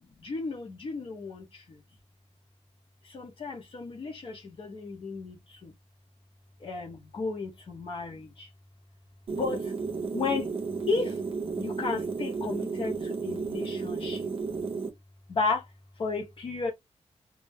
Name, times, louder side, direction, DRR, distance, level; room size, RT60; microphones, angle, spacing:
voice 1, 0.2-1.8 3.0-5.7 6.6-8.5 9.3-9.7 10.1-10.5 10.9-11.2 11.6-14.3 15.3-15.7 16.0-16.7, left 4 dB, 55° left, 0.7 m, -33 dB
sound 1, 9.3-14.9, right 4 dB, 55° right, 0.5 m, -33 dB
2.2 x 2.0 x 3.3 m
wide cardioid pair, 160°, 11 cm